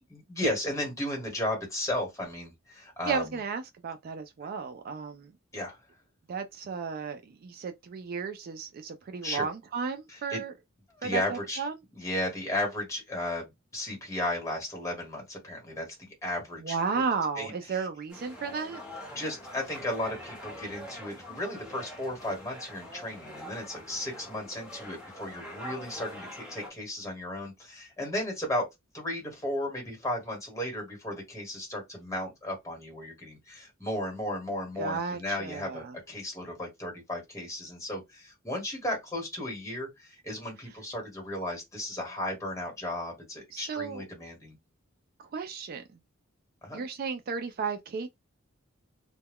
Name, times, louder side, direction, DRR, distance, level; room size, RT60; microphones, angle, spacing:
voice 1, 0.1-3.4 5.5-5.8 9.2-9.5 10.1-10.4 11.0-11.6 11.9-16.8 17.3-17.9 19.1-28.7 28.9-44.6 46.6-46.8, left 1 dB, 15° left, 1.3 m, -34 dB
voice 2, 3.1-5.3 6.3-10.5 11.0-11.7 16.6-18.8 34.8-35.9 43.5-44.0 45.3-45.8 46.7-48.1, right 5 dB, 45° right, 0.3 m, -34 dB
sound 1, 18.1-26.7, equal, 5° right, 1.0 m, -44 dB
2.2 x 2.1 x 3.5 m
head